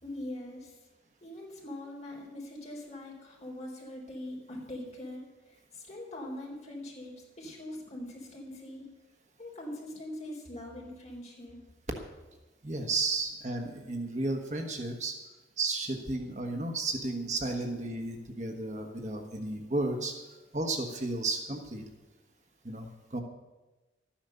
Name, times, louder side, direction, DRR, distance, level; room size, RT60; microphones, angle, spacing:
voice 1, 0.0-0.8 1.2-8.9 9.4-11.6, left 1 dB, 35° left, -2 dB, 3.9 m, -42 dB
voice 2, 12.6-15.1 15.6-20.1 20.5-21.8 22.6-23.2, right 2 dB, 40° right, 3 dB, 1.3 m, -33 dB
13.0 x 10.0 x 6.8 m, 1.1 s
head